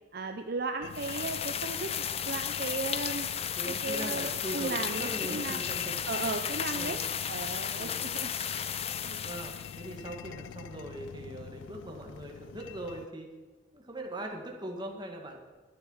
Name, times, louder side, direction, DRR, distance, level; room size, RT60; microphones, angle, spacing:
voice 1, 0.1-1.9 2.3-3.3 3.7-5.6 6.1-7.0 7.3-8.3 9.0-9.2, right 3 dB, 55° right, 6 dB, 0.6 m, -36 dB
sound 1, 0.8-13.1, left 8 dB, 85° left, 0.4 m, -44 dB
sound 2, 0.9-9.9, left 8 dB, 30° left, 0.5 m, -34 dB
voice 2, 3.4-6.0 6.7-7.1 7.7-8.0 9.2-13.3 13.7-15.4, right 1 dB, 25° right, 1 dB, 2.0 m, -40 dB
13.5 x 11.0 x 5.7 m, 1.3 s
head